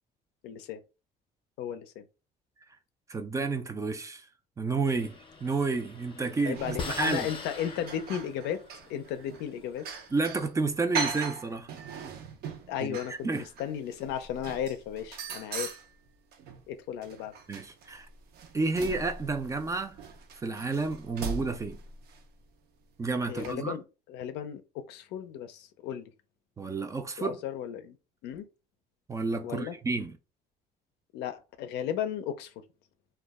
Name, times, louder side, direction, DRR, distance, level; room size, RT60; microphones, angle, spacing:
voice 1, 0.4-0.8 1.6-2.0 6.4-8.6 8.9-9.9 12.7-15.8 16.7-17.3 23.3-23.8 24.1-26.1 27.2-28.0 28.2-28.5 29.4-29.7 31.1-32.5, left 9 dB, 90° left, 0.4 m, -35 dB
voice 2, 3.1-4.3 4.6-5.1 5.4-6.6 7.0-7.3 10.1-11.7 12.8-13.4 17.5-18.1 18.5-20.0 20.4-21.8 23.0-23.8 26.6-27.4 29.1-30.1, right 3 dB, 20° right, 0.3 m, -30 dB
sound 1, 4.9-10.4, left 4 dB, 30° left, 0.6 m, -43 dB
sound 2, 6.5-7.2 7.5-10.5 10.9-16.6 17.0-22.2 23.2-23.5, right 5 dB, 70° right, 0.5 m, -40 dB
2.2 x 2.0 x 3.4 m
cardioid pair, 110°, 17 cm